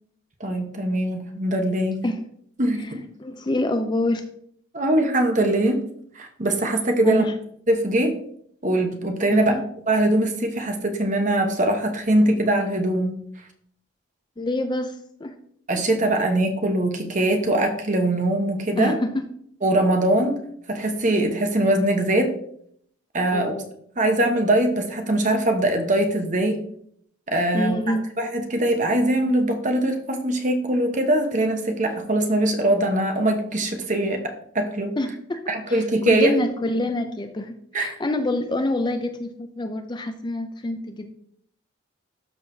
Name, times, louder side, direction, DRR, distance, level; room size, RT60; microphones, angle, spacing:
voice 1, 0.4-2.0 2.6-3.0 4.7-5.8 6.1-7.2 7.7-8.1 8.6-9.5 9.9-13.2 15.7-18.9 19.6-20.4 20.7-22.3 23.1-23.5 24.0-26.6 27.3-27.7 28.2-34.2 34.5-34.9 35.5-36.3 37.7-37.9, right 1 dB, 35° right, 4 dB, 1.0 m, -22 dB
voice 2, 3.2-4.2 7.0-7.3 9.3-9.6 14.4-15.3 18.8-19.3 23.3-23.7 27.5-28.0 35.0-35.4 35.7-41.1, left 1 dB, 20° left, 7 dB, 0.4 m, -26 dB
12.5 x 4.8 x 2.7 m, 0.67 s
head